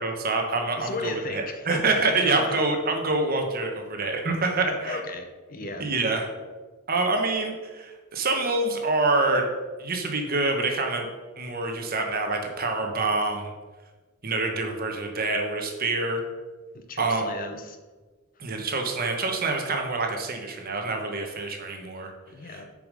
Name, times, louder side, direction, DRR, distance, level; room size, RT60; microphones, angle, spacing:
voice 1, 0.0-5.0 5.8-6.3 6.9-9.5 9.8-11.1 11.4-13.5 14.2-16.2 17.0-17.3 18.4-22.1 22.4-22.6, right 3 dB, 40° right, 3 dB, 1.0 m, -26 dB
voice 2, 0.8-2.6 4.6-5.9 16.7-17.8 22.3-22.7, left 2 dB, 40° left, 6 dB, 0.6 m, -35 dB
6.8 x 5.0 x 5.1 m, 1.3 s
head